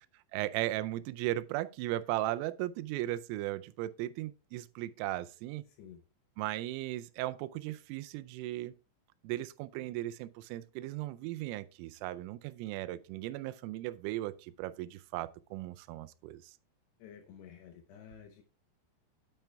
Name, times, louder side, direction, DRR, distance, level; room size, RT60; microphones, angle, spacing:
voice 1, 0.3-5.6 6.4-8.7 9.2-16.6, right 15 dB, 90° right, 3.2 m, -37 dB
voice 2, 5.7-6.0 17.0-18.4, left 8 dB, 75° left, 2.5 m, -52 dB
9.0 x 8.9 x 2.3 m
omnidirectional pair, 5.7 m